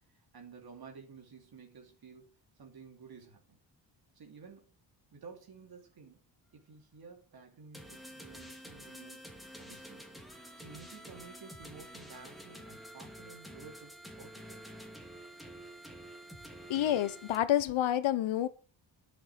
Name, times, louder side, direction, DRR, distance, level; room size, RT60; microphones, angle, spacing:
voice 1, 0.1-2.3 2.6-3.6 4.1-4.7 5.1-6.2 6.5-9.3 9.6-10.0 10.5-14.8, right 5 dB, 50° right, 3.2 m, -53 dB
sound 1, 7.7-17.4, right 1 dB, ahead, 2.6 m, -49 dB
voice 2, 16.7-18.5, left 12 dB, 85° left, 1.2 m, -28 dB
10.0 x 7.3 x 7.6 m
wide cardioid pair, 130°, 46 cm